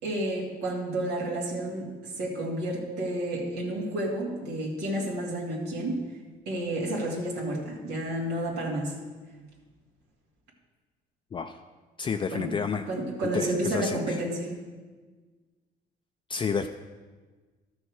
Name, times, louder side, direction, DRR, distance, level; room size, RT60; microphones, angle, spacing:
voice 1, 0.0-6.0 6.5-8.9 12.3-12.6 12.9-14.5, right 1 dB, 85° right, -3 dB, 2.5 m, -31 dB
voice 2, 12.0-12.9 13.3-14.2 16.3-16.7, left 6 dB, 30° left, 6 dB, 0.4 m, -30 dB
12.5 x 6.3 x 4.8 m, 1.4 s
cardioid pair, 110°, 17 cm